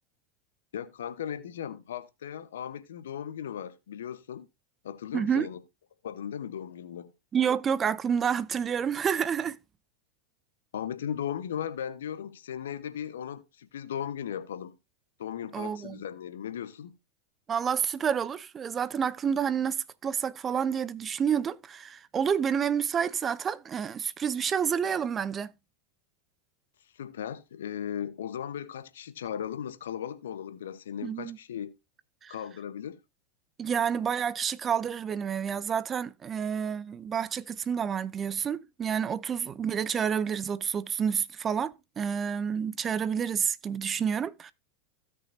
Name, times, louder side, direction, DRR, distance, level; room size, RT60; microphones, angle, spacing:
voice 1, 0.7-4.5 4.8-5.6 6.0-7.1 10.7-14.8 15.2-17.0 26.9-31.8 32.3-33.0, left 9 dB, 75° left, 1.1 m, -37 dB
voice 2, 5.1-5.5 7.3-9.6 15.5-16.0 17.5-25.5 31.0-31.4 32.2-32.3 33.6-44.5, right 7 dB, 30° right, 0.7 m, -29 dB
16.5 x 6.1 x 2.7 m
hypercardioid pair, 90°, 0 cm